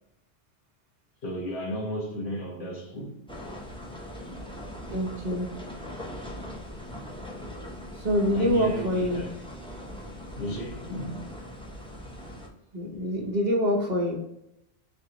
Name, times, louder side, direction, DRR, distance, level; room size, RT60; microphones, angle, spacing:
voice 1, 1.2-3.2 8.3-9.5 10.4-11.3, equal, 80° left, 1.5 m, -34 dB
sound 1, 3.3-12.5, equal, 5° left, 0.5 m, -40 dB
voice 2, 4.9-5.5 8.0-9.3 12.7-14.2, equal, 45° right, 0.8 m, -25 dB
4.0 x 3.4 x 2.8 m
omnidirectional pair, 1.1 m